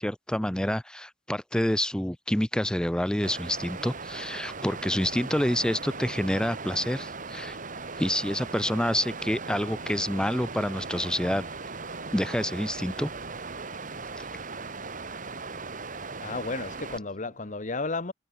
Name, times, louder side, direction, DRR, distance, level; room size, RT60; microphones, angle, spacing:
voice 1, 0.0-7.6 8.0-11.4 12.1-13.1 14.2-14.3, left 1 dB, 5° left, 0.6 m, -28 dB
Water, 3.2-17.0, right 4 dB, 45° right, 2.3 m, -38 dB
sound 1, 5.0-17.6, right 1 dB, 70° right, 7.6 m, -50 dB
voice 2, 16.2-18.1, left 3 dB, 40° left, 1.1 m, -33 dB
head